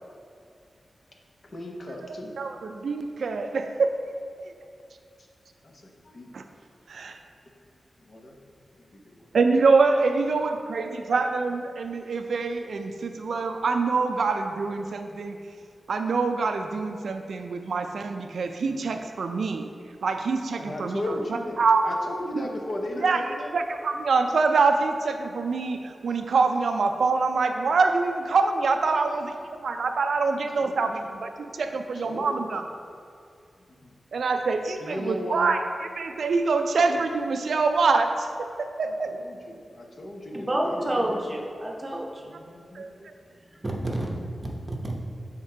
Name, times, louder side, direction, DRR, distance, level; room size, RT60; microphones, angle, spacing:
voice 1, 1.5-2.3 5.6-5.7 6.0-6.3 8.1-8.4 8.8-9.3 18.6-18.7 20.6-23.5 28.9-29.1 30.5-30.9 31.7-31.8 32.0-32.5 34.8-35.6 38.9-40.9 42.2-42.9, left 1 dB, 45° left, 1 dB, 0.8 m, -36 dB
voice 2, 2.0-4.0 4.4-4.5 6.3-6.4 6.9-7.2 9.3-15.4 15.9-19.7 20.0-21.9 22.4-22.5 23.0-23.2 23.5-32.7 34.1-39.2 42.7-43.1, right 4 dB, 85° right, 6 dB, 0.3 m, -25 dB
voice 3, 40.3-42.3 42.9-45.0, right 1 dB, 25° right, -1 dB, 0.8 m, -30 dB
6.5 x 3.6 x 4.4 m, 2.4 s
wide cardioid pair, 150°, 0 cm